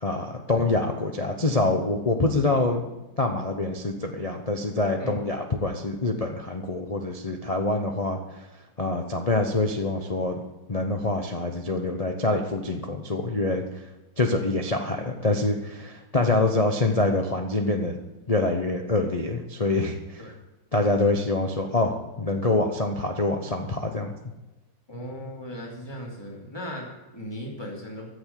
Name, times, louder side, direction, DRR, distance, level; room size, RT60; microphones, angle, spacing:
voice 1, 0.0-2.8 3.2-8.2 8.8-10.4 10.7-13.8 14.2-18.0 18.3-20.2 20.7-24.1, left 2 dB, 45° left, 3 dB, 0.4 m, -25 dB
voice 2, 16.1-16.6 20.2-20.4 24.9-28.1, equal, 10° left, -1 dB, 2.7 m, -37 dB
14.0 x 7.0 x 6.9 m, 1.1 s
omnidirectional pair, 2.3 m